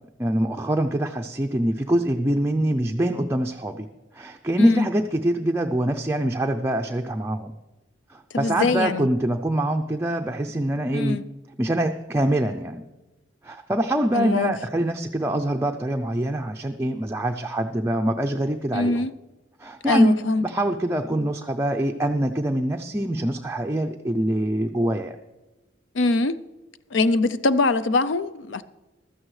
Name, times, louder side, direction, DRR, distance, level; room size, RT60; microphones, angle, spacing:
voice 1, 0.2-3.9 4.1-7.5 8.1-11.2 11.6-12.8 13.4-19.0 19.6-20.2 20.4-25.1, right 1 dB, 15° right, 0.5 m, -24 dB
voice 2, 4.6-4.9 8.3-9.1 10.9-11.2 14.1-14.5 18.7-19.1 19.8-20.5 25.9-26.4 26.9-28.6, left 3 dB, 75° left, 0.5 m, -22 dB
15.0 x 13.0 x 3.2 m
head